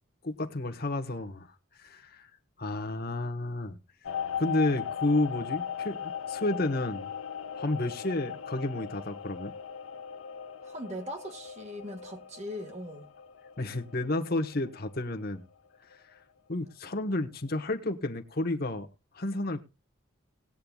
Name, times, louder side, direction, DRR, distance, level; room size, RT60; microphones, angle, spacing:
voice 1, 0.2-1.5 1.8-2.3 2.6-3.8 4.4-7.1 7.6-9.5 13.6-15.4 16.5-18.9 19.1-19.6, left 2 dB, 45° left, 1.2 m, -31 dB
sound 1, 4.0-15.4 15.7-16.1, left 8 dB, 90° left, 0.9 m, -39 dB
voice 2, 10.6-13.1, equal, 35° right, 1.8 m, -40 dB
19.5 x 8.7 x 2.4 m
head